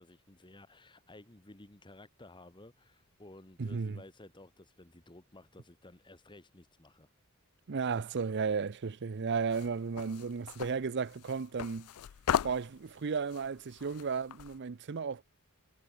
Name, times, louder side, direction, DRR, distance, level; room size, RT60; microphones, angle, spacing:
voice 1, 0.0-7.1, left 2 dB, 20° left, 1.5 m, -55 dB
voice 2, 3.6-4.0 7.7-11.9 12.4-15.2, right 5 dB, 50° right, 0.5 m, -34 dB
sound 1, 9.5-14.6, left 9 dB, 80° left, 0.4 m, -38 dB
head